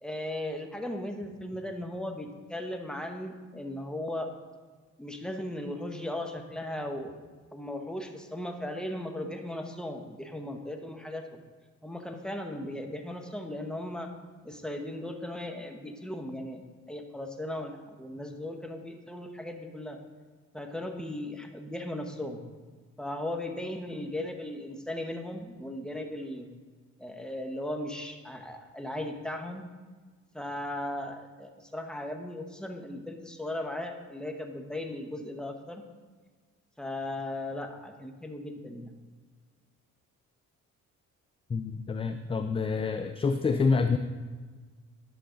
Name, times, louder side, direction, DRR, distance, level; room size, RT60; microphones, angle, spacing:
voice 1, 0.0-4.3 5.0-7.1 7.5-11.4 11.8-14.1 14.4-20.0 20.5-22.4 23.0-26.5 27.0-29.6 30.3-35.8 36.8-38.9, left 1 dB, 5° left, 4 dB, 1.0 m, -37 dB
voice 2, 41.5-44.0, left 4 dB, 20° left, 8 dB, 0.4 m, -27 dB
10.5 x 6.5 x 3.8 m, 1.4 s
cardioid pair, 90°, 30 cm